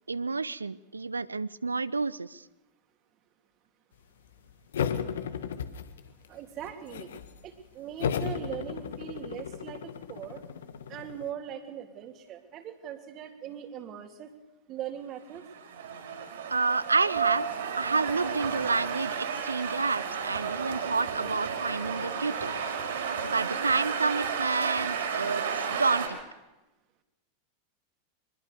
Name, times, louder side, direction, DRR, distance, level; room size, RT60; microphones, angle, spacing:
voice 1, 0.1-2.4 16.5-17.4 17.8-22.6 23.2-26.2, right 4 dB, 80° right, 19 dB, 0.7 m, -29 dB
sound 1, 4.7-6.3 6.6-7.3 8.0-11.3, left 7 dB, 60° left, 1.7 m, -34 dB
voice 2, 6.3-7.1 7.4-10.4 10.9-14.3 14.7-15.5, right 9 dB, 35° right, 7 dB, 3.1 m, -40 dB
sound 2, 15.3-26.1, right 7 dB, 60° right, 5.2 m, -32 dB
24.5 x 22.0 x 6.8 m, 1.0 s
figure-of-eight pair, 90°, 0 cm